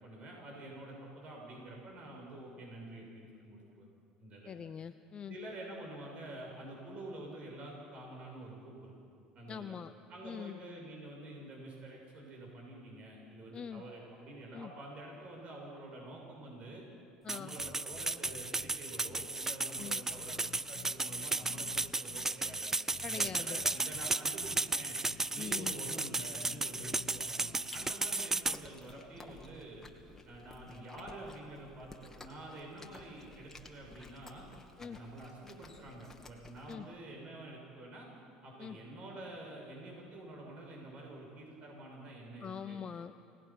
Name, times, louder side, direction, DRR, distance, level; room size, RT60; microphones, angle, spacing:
voice 1, 0.0-3.9 4.2-4.5 5.3-8.9 9.4-9.8 10.1-16.8 17.3-22.7 23.0-25.0 25.3-29.9 30.3-34.4 34.8-38.1 38.4-42.8, right 1 dB, 50° right, -1 dB, 6.8 m, -48 dB
voice 2, 4.4-5.4 9.5-9.9 10.2-10.6 13.5-13.8 14.5-14.7 17.2-17.6 19.8-20.0 23.0-23.6 25.4-25.7 34.8-35.0 36.7-36.9 38.6-38.8 42.4-43.2, left 7 dB, 35° left, 10 dB, 0.6 m, -43 dB
sound 1, 17.3-28.6, right 3 dB, 15° right, 0.5 m, -34 dB
sound 2, 17.6-18.8 19.1-19.3 19.7-22.6 22.9-24.1 24.4-24.6 25.1-27.9, left 11 dB, 65° left, 1.4 m, -52 dB
Chewing mastication, 27.5-36.7, left 2 dB, 15° left, 2.3 m, -54 dB
29.0 x 18.5 x 6.0 m, 2.4 s
supercardioid pair, 85°, 3 cm